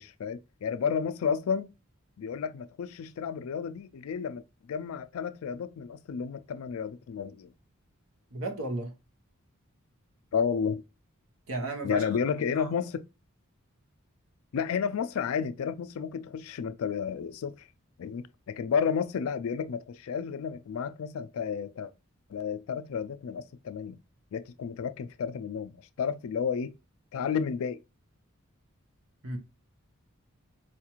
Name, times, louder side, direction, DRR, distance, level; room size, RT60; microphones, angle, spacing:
voice 1, 0.0-1.7 2.2-4.4 4.7-7.5 10.3-10.8 11.8-13.0 14.5-17.5 18.0-21.9 22.3-24.0 24.3-26.7 27.1-27.8, left 6 dB, 75° left, 0.3 m, -31 dB
voice 2, 8.3-8.9 11.5-12.1 12.5-12.7 29.2-29.4, right 2 dB, 75° right, 0.8 m, -34 dB
4.3 x 2.4 x 2.9 m
head